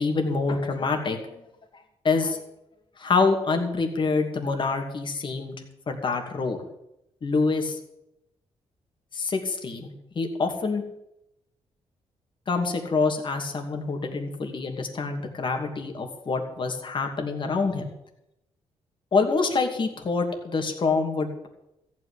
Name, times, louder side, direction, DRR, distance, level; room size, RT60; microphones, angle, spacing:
voice 1, 0.0-1.4 2.0-2.4 3.0-5.5 5.9-6.6 7.2-7.8 9.1-10.8 12.5-17.9 19.1-21.5, left 4 dB, 45° left, 4 dB, 2.6 m, -26 dB
14.5 x 6.1 x 9.8 m, 0.84 s
cardioid pair, 90°, 11 cm